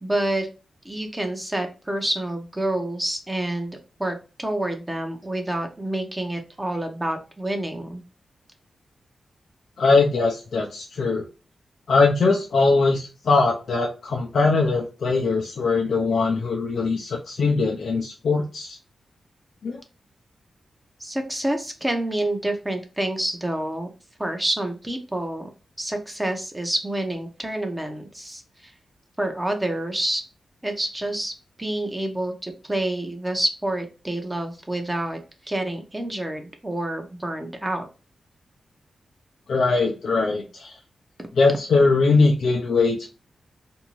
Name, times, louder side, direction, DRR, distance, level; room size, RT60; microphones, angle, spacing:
voice 1, 0.0-0.5 0.8-8.0 21.0-23.9 24.2-25.5 25.8-28.7 29.2-30.2 30.6-31.3 31.6-35.2 35.4-37.9 41.2-41.3, right 1 dB, 15° right, 4 dB, 0.6 m, -28 dB
voice 2, 9.8-11.2 11.9-18.8 19.6-19.8 39.5-40.7 41.4-43.1, left 3 dB, 75° left, -2 dB, 0.5 m, -21 dB
2.6 x 2.2 x 2.9 m, 0.33 s
cardioid pair, 65°, 0 cm